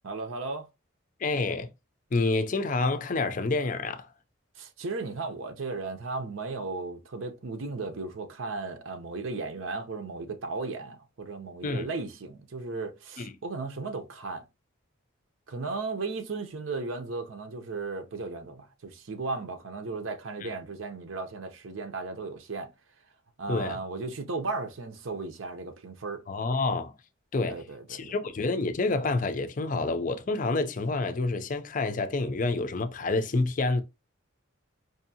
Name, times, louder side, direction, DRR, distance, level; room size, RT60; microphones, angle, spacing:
voice 1, 0.0-0.7 4.6-14.4 15.5-22.7 23.4-26.2 27.5-28.2, right 3 dB, 75° right, 0.7 m, -35 dB
voice 2, 1.2-1.7 2.1-4.1 11.6-11.9 13.2-13.3 23.5-23.8 26.3-26.9 27.3-27.6 27.9-33.8, left 3 dB, 40° left, 0.4 m, -28 dB
4.8 x 2.7 x 2.7 m
head